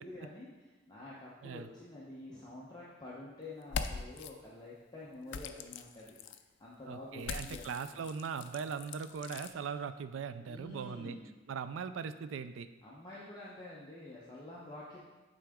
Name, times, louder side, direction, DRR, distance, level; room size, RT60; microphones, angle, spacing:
voice 1, 0.0-6.1 6.6-8.0 10.5-11.4 12.8-15.0, left 2 dB, 20° left, -7 dB, 0.8 m, -48 dB
sound 1, 3.6-4.3 5.3-6.4 7.2-9.5, left 6 dB, 65° left, 0.4 m, -41 dB
voice 2, 6.9-11.2 11.5-12.7, right 6 dB, 80° right, 11 dB, 0.3 m, -40 dB
8.9 x 3.8 x 3.6 m, 1.2 s
head